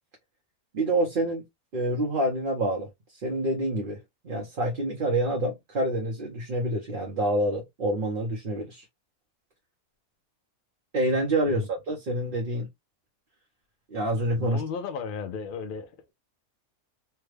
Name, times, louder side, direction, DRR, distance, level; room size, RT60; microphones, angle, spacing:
voice 1, 0.7-1.4 1.7-8.8 10.9-12.7 13.9-14.6, right 1 dB, 45° right, 0.8 m, -27 dB
voice 2, 14.4-16.1, left 6 dB, 55° left, 0.6 m, -35 dB
3.3 x 2.2 x 3.2 m
omnidirectional pair, 1.5 m